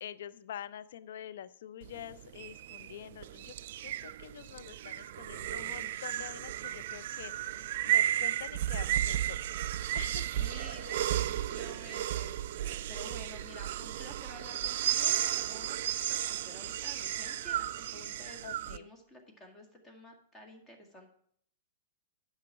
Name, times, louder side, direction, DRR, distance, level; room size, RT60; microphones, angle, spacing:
voice 1, 0.0-3.5 3.8-9.5 9.9-10.3 18.4-18.9, left 10 dB, 60° left, 14 dB, 0.5 m, -46 dB
sound 1, 1.8-18.8, right 12 dB, 55° right, 0.3 m, -34 dB
voice 2, 10.3-21.1, left 1 dB, 20° left, 4 dB, 1.9 m, -51 dB
9.6 x 5.8 x 5.7 m, 0.64 s
figure-of-eight pair, 110°, 0 cm